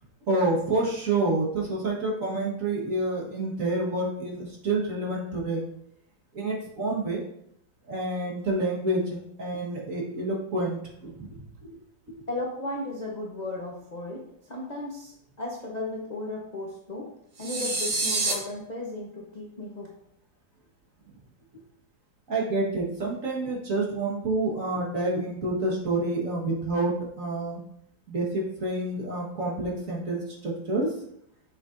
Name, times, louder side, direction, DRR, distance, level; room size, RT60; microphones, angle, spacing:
voice 1, 0.3-5.7 6.3-7.2 7.9-11.4 22.3-27.6 28.1-30.9, right 2 dB, 45° right, -2 dB, 1.8 m, -28 dB
voice 2, 12.3-17.1 17.4-19.9, left 2 dB, 35° left, -3 dB, 0.8 m, -35 dB
sound 1, 17.4-18.3, right 3 dB, 75° right, 1.9 m, -27 dB
6.8 x 6.5 x 2.6 m, 0.73 s
omnidirectional pair, 2.0 m